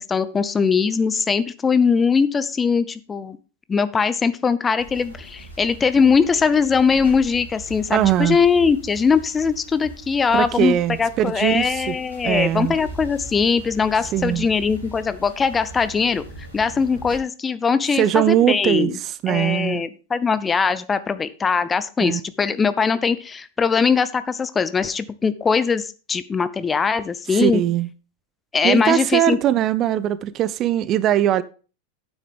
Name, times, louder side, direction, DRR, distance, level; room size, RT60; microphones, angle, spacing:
voice 1, 0.0-3.4 3.7-16.2 16.5-19.0 19.3-27.6 28.5-29.4, left 5 dB, 15° left, 0.6 m, -21 dB
sound 1, 4.8-17.2, right 2 dB, 80° left, 4.0 m, -40 dB
voice 2, 7.9-8.4 10.3-12.0 12.2-12.7 14.1-14.5 18.0-19.8 22.0-22.2 27.3-27.9 28.6-31.4, right 12 dB, 35° right, 0.5 m, -20 dB
9.3 x 8.0 x 3.5 m
figure-of-eight pair, 90°, 0 cm